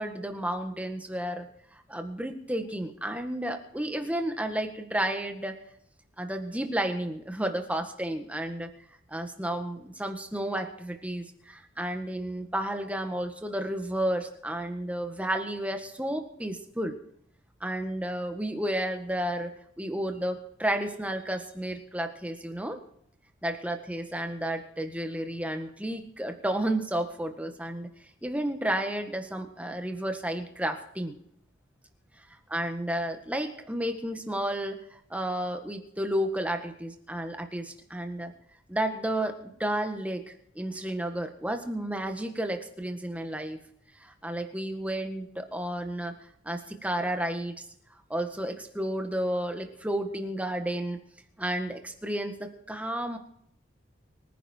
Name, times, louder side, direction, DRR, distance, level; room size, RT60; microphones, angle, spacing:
voice 1, 0.0-1.5 1.9-5.6 6.2-8.7 9.1-17.0 17.6-22.8 23.4-27.9 28.2-31.2 32.5-38.3 38.7-40.2 40.5-43.6 44.0-46.1 46.4-47.6 48.1-51.0 51.4-53.2, right 1 dB, 5° right, 6 dB, 1.6 m, -32 dB
24.5 x 10.0 x 4.5 m, 0.69 s
head